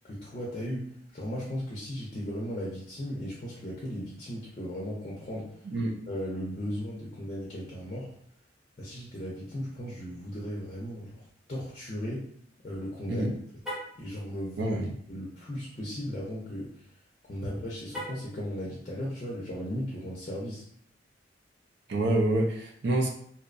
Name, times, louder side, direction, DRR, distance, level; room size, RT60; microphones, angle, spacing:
voice 1, 0.0-5.5 6.1-8.1 8.8-11.1 11.5-12.2 12.6-13.3 14.0-14.8 15.1-16.9 17.2-20.6, equal, 35° left, -5 dB, 0.5 m, -36 dB
voice 2, 5.6-6.0 13.1-13.3 14.5-14.9 21.9-23.1, right 1 dB, 65° right, 1 dB, 0.5 m, -27 dB
Car, 13.6-14.0 17.9-18.4, equal, 5° right, 0.6 m, -38 dB
2.7 x 2.0 x 2.5 m, 0.66 s
head